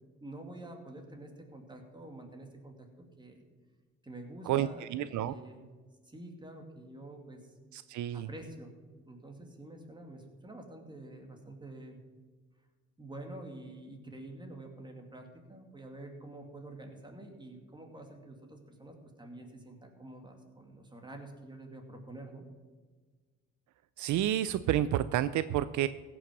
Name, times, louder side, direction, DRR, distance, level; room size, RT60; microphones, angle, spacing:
voice 1, 0.2-3.5 4.0-5.7 6.0-7.5 8.1-8.7 9.1-12.0 13.0-22.4, right 1 dB, 15° right, 3 dB, 2.3 m, -48 dB
voice 2, 4.5-5.3 7.7-8.3 24.0-25.9, right 12 dB, 75° right, 14 dB, 0.5 m, -30 dB
16.0 x 6.3 x 6.0 m, 1.5 s
cardioid pair, 90°, 30 cm